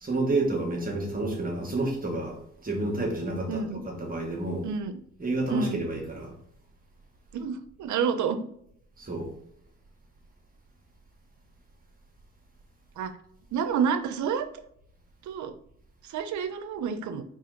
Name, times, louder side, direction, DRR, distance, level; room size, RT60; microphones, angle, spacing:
voice 1, 0.0-4.7 5.2-6.3 9.0-9.3, right 2 dB, 30° right, 0 dB, 1.3 m, -30 dB
voice 2, 3.5-3.8 4.6-4.9 5.5-5.8 7.3-8.4 13.0-13.1 13.5-14.4 15.2-15.5 16.0-17.2, right 6 dB, 70° right, 9 dB, 0.7 m, -29 dB
4.1 x 3.1 x 3.8 m, 0.69 s
cardioid pair, 90°, 30 cm